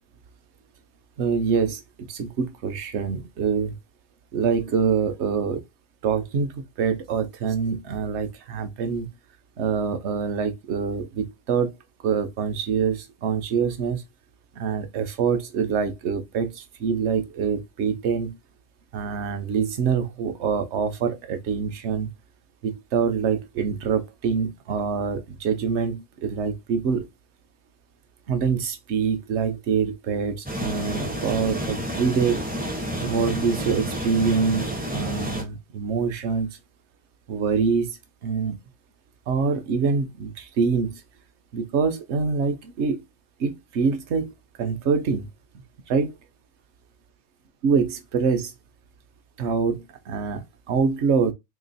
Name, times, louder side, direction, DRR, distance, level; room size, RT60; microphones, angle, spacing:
voice 1, 1.2-3.7 4.3-5.6 6.0-9.1 9.6-11.7 12.0-14.0 14.6-18.4 18.9-22.1 22.6-27.1 28.3-32.4 33.0-36.6 37.3-38.0 38.2-38.6 39.3-41.0 41.5-43.0 43.4-44.3 44.6-45.3 45.9-46.1 47.6-48.5 49.4-51.3, right 5 dB, 60° right, 1.0 m, -25 dB
sound 1, 30.5-35.4, equal, 15° right, 0.4 m, -30 dB
3.0 x 2.9 x 4.0 m
omnidirectional pair, 1.4 m